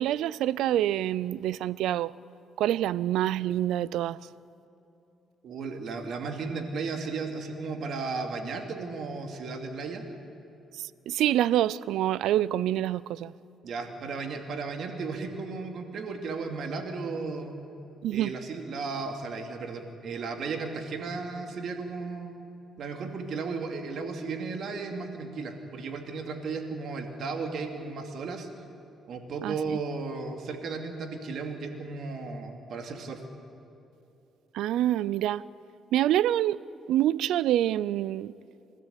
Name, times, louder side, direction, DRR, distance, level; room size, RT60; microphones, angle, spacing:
voice 1, 0.0-2.1 2.6-4.2 10.7-13.3 18.0-18.3 29.4-29.8 34.5-35.4 35.9-36.6 36.9-38.3, right 12 dB, 85° right, 0.4 m, -26 dB
voice 2, 5.4-10.1 13.6-17.6 18.1-22.4 22.8-28.5 29.1-33.2, right 4 dB, 65° right, 2.6 m, -35 dB
30.0 x 13.0 x 8.3 m
cardioid pair, 90°, 0 cm